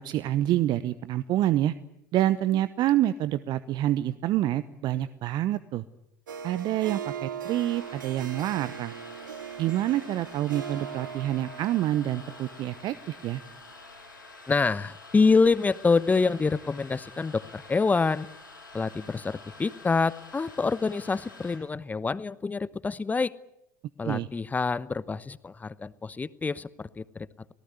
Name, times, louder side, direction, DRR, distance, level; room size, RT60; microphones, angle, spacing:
voice 1, 0.0-1.7 2.1-5.8 6.4-9.0 9.6-13.4 24.0-24.3, right 13 dB, 45° right, 15 dB, 0.9 m, -27 dB
Harp, 6.3-13.8, right 8 dB, 75° right, 1.3 m, -40 dB
sound 1, 7.4-21.6, left 3 dB, 80° left, 7.7 m, -48 dB
voice 2, 14.5-18.3 18.7-23.3 24.0-27.3, left 4 dB, 15° left, 18 dB, 1.0 m, -26 dB
25.5 x 18.5 x 9.6 m, 0.83 s
figure-of-eight pair, 75°, 10 cm